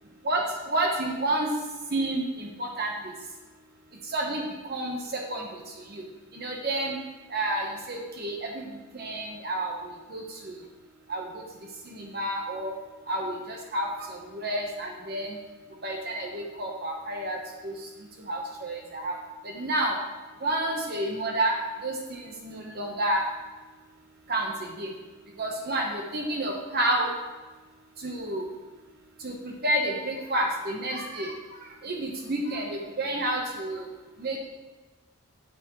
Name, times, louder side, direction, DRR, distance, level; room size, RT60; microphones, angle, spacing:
voice 1, 0.2-1.5 1.9-2.9 4.1-4.4 4.7-5.5 5.9-6.0 6.3-7.0 7.3-8.5 8.9-9.8 10.1-10.5 11.1-11.2 11.9-12.7 13.1-15.4 15.8-17.4 17.6-17.7 18.3-19.2 19.5-20.0 20.4-21.5 21.8-23.2 24.3-24.5 24.8-24.9 25.4-27.1 28.0-28.4 29.2-31.3 31.8-33.8 34.2-34.4, right 1 dB, 45° right, 0 dB, 1.0 m, -29 dB
9.7 x 6.9 x 3.1 m, 1.2 s
head